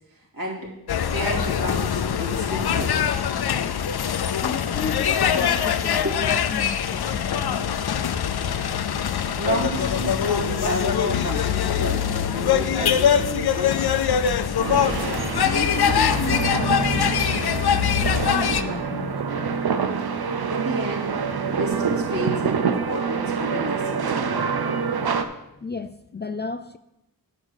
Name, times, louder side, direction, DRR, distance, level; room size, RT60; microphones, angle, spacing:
voice 1, 0.3-0.7 1.1-3.0 6.0-6.2 9.4-13.8 20.5-24.6, right 1 dB, 65° right, -4 dB, 2.9 m, -31 dB
sound 1, 0.9-18.6, left 8 dB, 85° left, 0.6 m, -23 dB
voice 2, 4.4-7.7 15.4-19.1 25.6-26.8, left 4 dB, 30° left, 10 dB, 0.3 m, -33 dB
sound 2, 14.6-25.3, right 5 dB, 80° right, 0.7 m, -26 dB
9.0 x 4.9 x 6.3 m, 0.90 s
wide cardioid pair, 70°, 37 cm